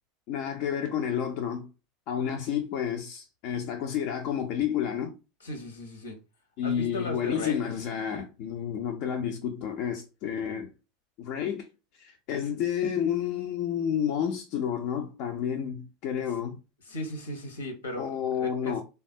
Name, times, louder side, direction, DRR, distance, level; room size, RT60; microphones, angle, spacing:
voice 1, 0.3-1.7 2.1-5.1 6.6-10.7 11.2-11.7 12.0-16.6 18.0-18.8, left 8 dB, 55° left, 0.5 m, -30 dB
voice 2, 5.4-6.2 6.6-7.6 16.8-18.1 18.3-18.8, left 1 dB, 85° left, 0.9 m, -36 dB
3.4 x 2.3 x 2.7 m
hypercardioid pair, 85°, 0 cm